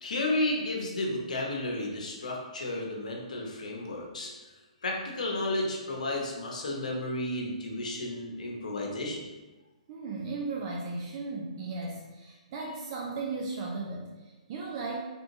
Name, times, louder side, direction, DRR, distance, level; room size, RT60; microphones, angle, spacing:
voice 1, 0.0-4.3 4.8-9.2, left 1 dB, 85° left, -1 dB, 0.8 m, -32 dB
voice 2, 9.9-15.0, right 3 dB, 40° right, -1 dB, 0.4 m, -36 dB
3.3 x 2.8 x 2.7 m, 1.2 s
hypercardioid pair, 150°, 4 cm